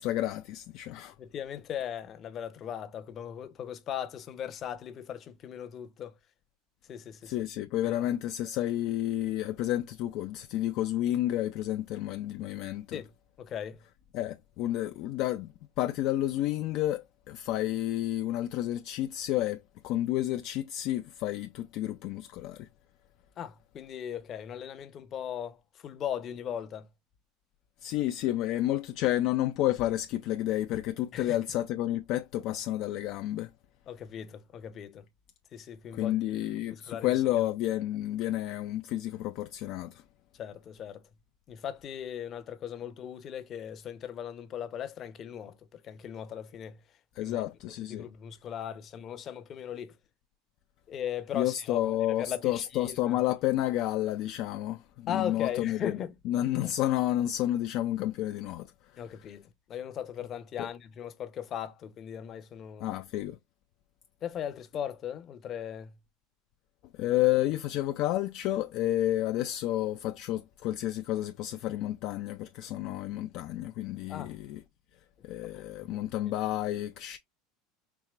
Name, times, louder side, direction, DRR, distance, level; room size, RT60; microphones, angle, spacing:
voice 1, 0.0-1.1 7.2-13.0 14.1-22.7 27.8-33.5 35.9-40.0 47.2-48.1 51.3-56.0 56.2-59.2 60.6-60.7 62.8-63.4 66.9-74.6 75.2-77.2, left 14 dB, 60° left, 0.3 m, -30 dB
voice 2, 1.2-6.1 6.9-7.3 12.9-13.1 13.4-13.8 23.4-26.9 31.1-31.4 33.9-35.0 35.5-36.2 36.7-37.1 40.4-41.0 41.5-46.8 47.2-47.4 47.9-49.9 50.9-51.8 52.2-53.2 55.1-56.1 56.6-56.7 59.0-62.9 64.2-65.9 74.1-74.3 75.6-75.7 75.9-76.0, left 9 dB, 45° left, 0.7 m, -38 dB
4.6 x 2.8 x 2.4 m
hypercardioid pair, 85°, 0 cm